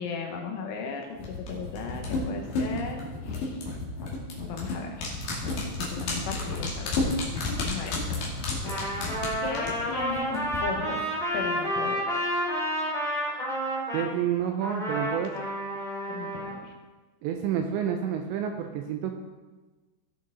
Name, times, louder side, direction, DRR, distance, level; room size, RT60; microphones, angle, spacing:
voice 1, 0.0-3.6 4.4-5.2 5.8-6.9 7.6-8.0 9.4-11.0 11.3-12.3 16.1-16.7, left 5 dB, 80° left, 2 dB, 3.6 m, -36 dB
sound 1, 1.2-10.6 10.9-11.0, left 3 dB, 55° left, 3.2 m, -31 dB
Trumpet, 8.6-14.1 14.6-16.5, equal, 5° left, 0.3 m, -30 dB
voice 2, 13.9-15.3 17.2-19.1, right 9 dB, 85° right, 4 dB, 2.6 m, -29 dB
17.0 x 6.5 x 3.9 m, 1.2 s
omnidirectional pair, 5.7 m